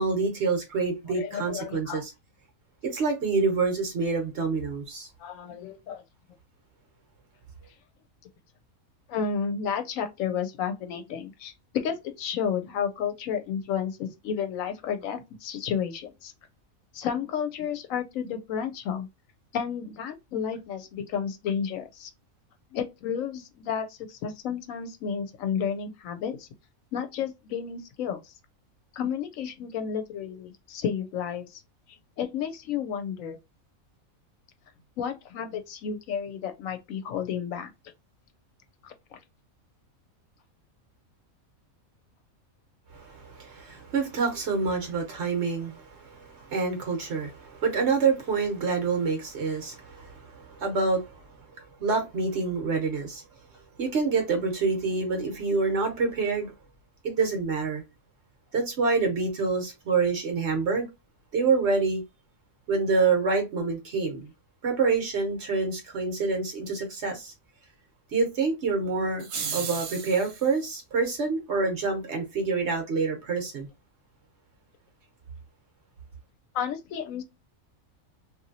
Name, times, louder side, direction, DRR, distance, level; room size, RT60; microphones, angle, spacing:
voice 1, 0.0-2.1 2.8-5.1 42.9-51.2 51.8-53.2 53.8-56.5 57.0-57.8 58.5-60.9 61.3-62.0 62.7-64.3 64.6-67.3 68.1-73.7, right 4 dB, 55° right, 1.0 m, -27 dB
voice 2, 1.1-2.0 5.2-6.0 9.1-16.3 16.9-19.1 19.5-22.1 22.7-26.5 26.9-28.3 28.9-31.6 32.2-33.4 35.0-37.7 38.8-39.2 76.5-77.2, left 7 dB, 75° left, 0.9 m, -32 dB
sound 1, 69.2-70.5, right 6 dB, 75° right, 1.2 m, -34 dB
2.8 x 2.5 x 2.6 m
omnidirectional pair, 1.5 m